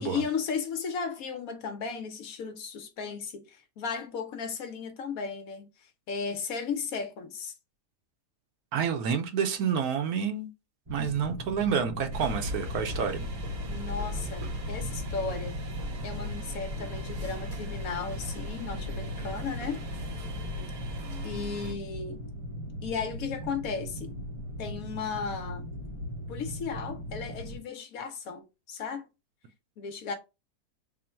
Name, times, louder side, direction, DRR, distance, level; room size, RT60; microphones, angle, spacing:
voice 1, 0.0-7.5 13.7-15.6 16.0-19.8 21.2-22.2 22.8-24.1 24.6-25.7 26.3-29.1 29.8-30.1, left 5 dB, 70° left, 0.9 m, -35 dB
voice 2, 8.7-10.5 10.9-13.2, right 7 dB, 70° right, 1.1 m, -29 dB
sound 1, 10.9-27.6, equal, 40° right, 0.4 m, -39 dB
sound 2, 12.1-21.7, left 1 dB, 85° right, 1.5 m, -38 dB
3.7 x 2.1 x 4.3 m
omnidirectional pair, 1.7 m